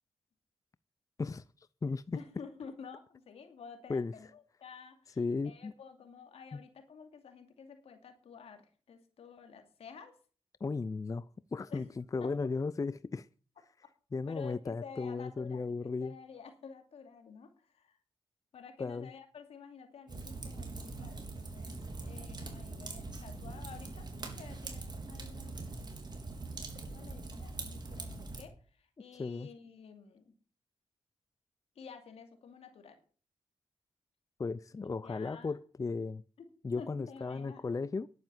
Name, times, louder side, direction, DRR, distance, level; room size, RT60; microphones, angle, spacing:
voice 1, 1.2-2.2 3.9-4.1 5.2-5.7 6.5-6.6 10.6-11.3 11.5-13.3 14.1-16.2 18.8-19.1 29.2-29.5 34.4-36.2 36.6-38.1, left 4 dB, 35° left, 0.5 m, -35 dB
voice 2, 2.1-5.2 5.4-10.1 11.7-11.8 12.2-12.3 14.3-18.0 18.5-25.6 26.5-30.3 31.7-33.0 35.0-35.6 36.4-36.5 36.8-37.8, left 6 dB, 80° left, 2.6 m, -51 dB
Fire, 20.1-28.4, right 3 dB, 45° right, 3.6 m, -43 dB
11.0 x 9.3 x 7.5 m
cardioid pair, 55°, 10 cm